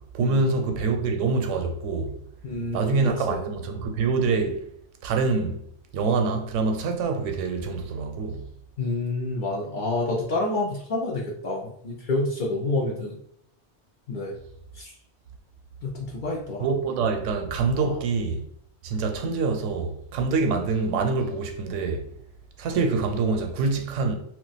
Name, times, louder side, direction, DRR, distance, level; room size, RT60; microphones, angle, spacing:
voice 1, 0.1-2.1 2.7-4.6 5.0-5.6 5.9-8.5 16.6-18.5 18.8-22.0 22.6-24.2, right 4 dB, 85° right, 0.9 m, -25 dB
voice 2, 2.4-3.4 8.8-13.2 14.1-14.4 14.8-14.9 15.8-16.7 17.8-18.0, left 2 dB, 60° left, 0.5 m, -28 dB
2.3 x 2.1 x 3.9 m
omnidirectional pair, 1.2 m